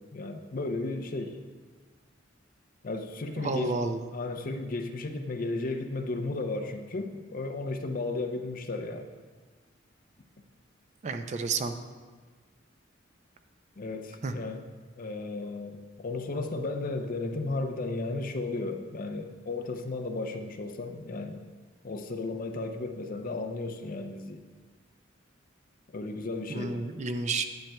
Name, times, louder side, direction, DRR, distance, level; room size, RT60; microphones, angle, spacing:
voice 1, 0.1-1.4 2.8-3.7 4.1-9.1 13.8-14.6 15.0-21.4 21.8-24.4 25.9-26.8, left 2 dB, 45° left, 6 dB, 0.6 m, -34 dB
voice 2, 3.4-4.0 11.0-11.8 14.2-14.3 26.5-27.4, right 4 dB, 40° right, 8 dB, 0.4 m, -30 dB
10.5 x 8.6 x 2.2 m, 1.4 s
head